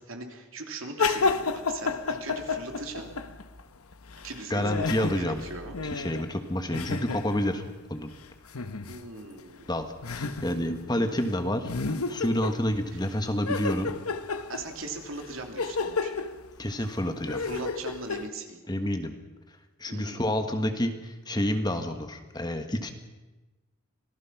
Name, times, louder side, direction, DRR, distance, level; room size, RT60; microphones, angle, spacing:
voice 1, 0.1-3.1 4.2-5.8 8.9-9.7 14.5-16.2 17.4-18.6 19.9-20.3, right 3 dB, 75° right, 3 dB, 3.1 m, -40 dB
sound 1, 1.0-3.6 3.9-7.7 8.5-9.0 9.4-9.5 10.0-10.9 11.2-11.3 11.6-13.1 13.5-18.3, left 4 dB, 90° left, 1.1 m, -31 dB
voice 2, 4.5-5.4 5.9-7.6 7.9-8.1 9.7-14.0 16.6-17.4 18.7-19.1 19.8-22.9, left 1 dB, 20° left, 6 dB, 1.4 m, -29 dB
26.5 x 18.0 x 5.9 m, 1.1 s
head